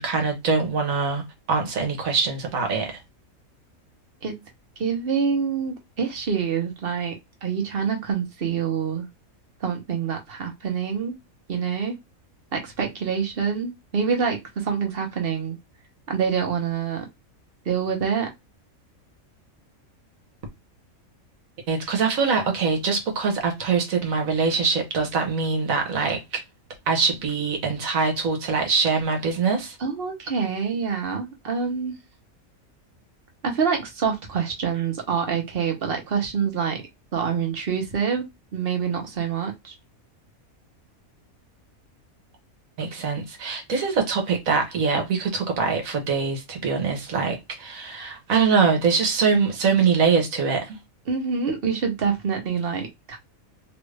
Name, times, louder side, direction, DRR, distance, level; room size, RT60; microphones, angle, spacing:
voice 1, 0.0-3.0 21.7-26.4 26.9-29.8 42.8-50.8, right 5 dB, 75° right, 1.3 m, -23 dB
voice 2, 4.8-9.1 9.6-11.2 11.5-11.9 12.5-15.6 16.1-17.1 17.7-18.3 29.8-31.9 33.4-36.8 37.1-38.3 38.5-39.7 51.1-53.2, right 6 dB, 45° right, 1.0 m, -26 dB
3.1 x 2.4 x 3.2 m
omnidirectional pair, 1.5 m